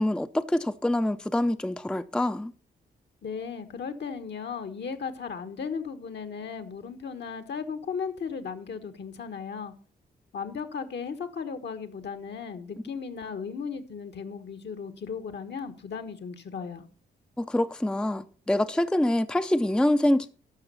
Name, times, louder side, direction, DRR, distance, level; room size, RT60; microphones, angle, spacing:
voice 1, 0.0-2.5 17.4-20.3, left 1 dB, 5° left, 0.6 m, -25 dB
voice 2, 3.2-9.7 10.3-16.8, left 6 dB, 60° left, 1.4 m, -36 dB
13.0 x 6.0 x 5.6 m
supercardioid pair, 55°, 20 cm